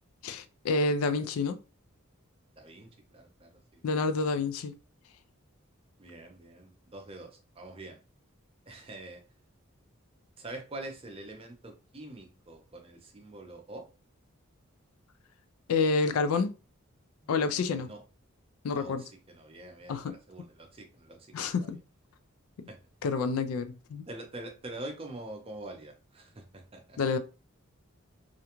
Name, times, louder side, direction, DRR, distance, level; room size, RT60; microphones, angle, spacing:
voice 1, 0.2-1.6 3.8-4.7 15.7-16.5 17.3-17.9 18.6-19.0 19.9-20.1 21.3-21.8 22.6-22.7 23.0-24.1 27.0-27.2, left 4 dB, 85° left, 0.3 m, -28 dB
voice 2, 2.6-3.8 6.0-8.0 8.7-9.2 10.4-13.8 17.2-17.3 17.7-18.0 18.7-21.8 22.7-22.8 24.1-27.0, right 2 dB, 25° right, 0.5 m, -45 dB
2.4 x 2.2 x 2.9 m
head